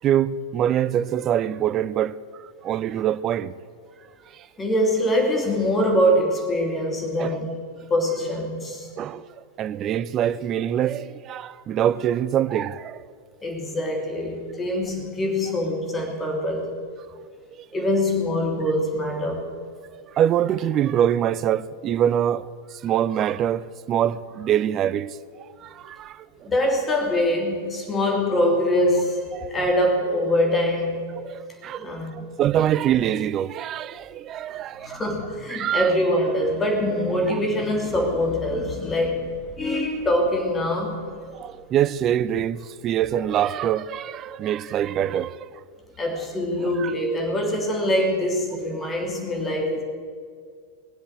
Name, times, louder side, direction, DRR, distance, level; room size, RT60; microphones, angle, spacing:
voice 1, 0.0-2.2 2.6-3.5 7.2-7.4 9.0-13.0 17.6-17.7 20.1-25.2 25.6-26.5 29.3-29.5 31.2-31.9 32.4-35.0 35.5-35.9 37.3-37.4 41.3-45.5 46.8-46.9, right 10 dB, 30° right, 0.6 m, -24 dB
voice 2, 4.6-7.5 7.9-8.9 13.4-16.7 17.7-19.5 26.4-31.0 31.8-32.3 34.8-41.0 46.0-49.8, left 1 dB, 15° left, 3.2 m, -24 dB
21.5 x 7.9 x 7.8 m
figure-of-eight pair, 90°, 0 cm